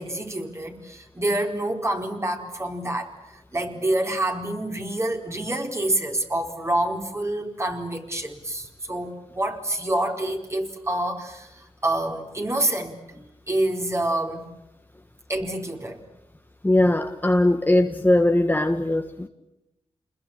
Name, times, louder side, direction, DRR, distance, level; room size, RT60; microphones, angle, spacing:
voice 1, 0.0-3.1 3.5-14.5 15.3-16.0, right 1 dB, 25° right, 3 dB, 4.4 m, -27 dB
voice 2, 16.6-19.3, left 1 dB, 15° left, 6 dB, 1.6 m, -20 dB
28.5 x 21.5 x 8.7 m, 0.91 s
cardioid pair, 70°, 11 cm